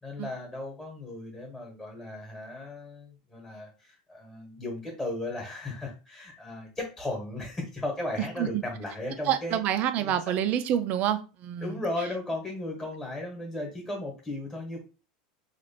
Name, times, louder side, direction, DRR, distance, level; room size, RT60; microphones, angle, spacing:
voice 1, 0.0-9.6 10.0-10.1 11.6-14.8, left 2 dB, 10° left, 1.1 m, -36 dB
voice 2, 9.2-11.8, right 10 dB, 40° right, 0.4 m, -27 dB
2.9 x 2.4 x 4.1 m
supercardioid pair, 145°, 4 cm